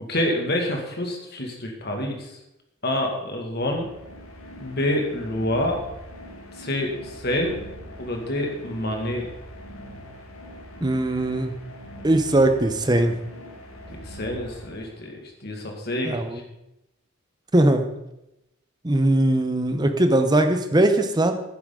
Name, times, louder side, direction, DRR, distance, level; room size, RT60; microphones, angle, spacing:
voice 1, 0.1-2.4 2.8-3.9 4.6-5.8 6.6-7.6 8.0-9.3 14.0-16.4, left 1 dB, 50° left, 2 dB, 2.1 m, -27 dB
sound 1, 3.5-15.2, equal, 80° left, 2.1 m, -42 dB
voice 2, 10.8-11.6 12.0-13.1 16.0-16.4 17.5-17.9 18.8-21.3, right 1 dB, 20° right, 7 dB, 0.8 m, -20 dB
11.0 x 9.8 x 3.9 m, 0.89 s
head